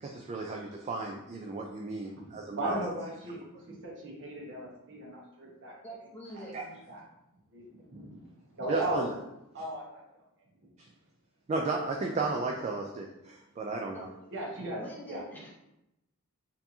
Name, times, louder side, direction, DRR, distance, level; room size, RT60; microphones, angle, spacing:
voice 1, 0.0-2.8 6.5-6.6 8.7-9.1 11.5-14.1, right 3 dB, 30° right, 1 dB, 0.3 m, -34 dB
voice 2, 2.1-3.4 3.7-6.0 6.3-6.4 6.9-7.0 7.5-8.3 8.5-9.1 9.5-10.0 14.3-14.8 15.1-15.2, right 1 dB, 55° right, -3 dB, 1.1 m, -37 dB
voice 3, 5.8-6.7 13.9-14.5 14.8-15.5, right 1 dB, 10° left, -4 dB, 0.7 m, -45 dB
4.3 x 2.8 x 2.7 m, 0.88 s
head